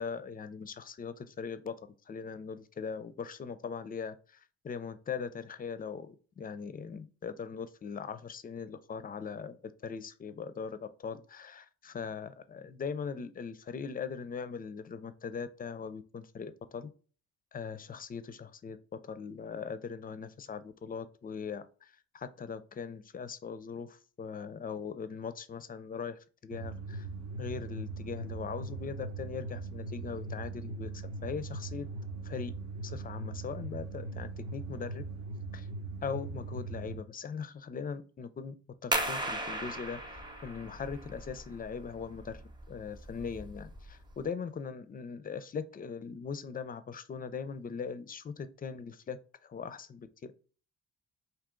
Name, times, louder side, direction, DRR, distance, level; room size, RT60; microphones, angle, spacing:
voice 1, 0.0-16.9 17.5-18.8 19.0-27.1 27.4-31.9 32.2-32.5 32.8-35.0 35.5-35.7 36.0-38.6 38.8-40.0 40.4-50.3, left 6 dB, 30° left, 0.4 m, -40 dB
sound 1, 26.5-37.0, right 3 dB, 70° right, 0.8 m, -40 dB
sound 2, 38.9-44.3, right 1 dB, 15° right, 0.7 m, -37 dB
3.7 x 2.7 x 3.7 m
cardioid pair, 90°, 30 cm